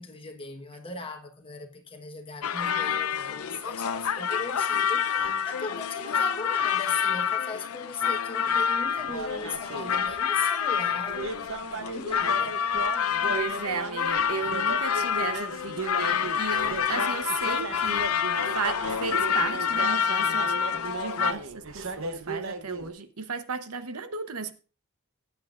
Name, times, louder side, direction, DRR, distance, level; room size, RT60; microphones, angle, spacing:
voice 1, 0.0-11.2 11.7-12.7, left 3 dB, 25° left, 1.3 m, -38 dB
sound 1, 2.4-21.3, left 7 dB, 80° left, 0.6 m, -27 dB
sound 2, 9.1-10.2 11.1-22.9, right 3 dB, 60° right, 0.9 m, -37 dB
voice 2, 13.3-24.5, right 5 dB, 90° right, 1.0 m, -34 dB
16.0 x 8.5 x 2.5 m
head